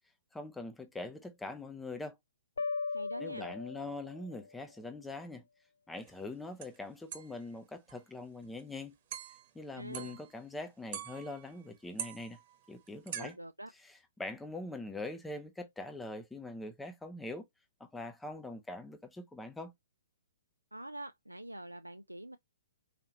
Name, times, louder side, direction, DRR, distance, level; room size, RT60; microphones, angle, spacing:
voice 1, 0.3-2.1 3.2-5.4 5.9-8.9 9.5-12.4 12.7-13.3 14.2-17.5 17.8-19.7, left 2 dB, 5° left, 0.6 m, -43 dB
sound 1, 2.6-4.5, left 4 dB, 65° left, 0.3 m, -38 dB
voice 2, 2.9-3.5 9.7-10.2 13.2-13.7 20.7-22.4, right 1 dB, 85° right, 0.4 m, -45 dB
sound 2, 6.1-6.2 6.6-6.8 7.1-7.5 7.9-8.0 8.4-8.6 9.1-9.5 9.9-10.4 10.9-11.7 12.0-13.4, right 9 dB, 40° right, 1.2 m, -44 dB
4.9 x 2.8 x 2.9 m
figure-of-eight pair, 120°, 0 cm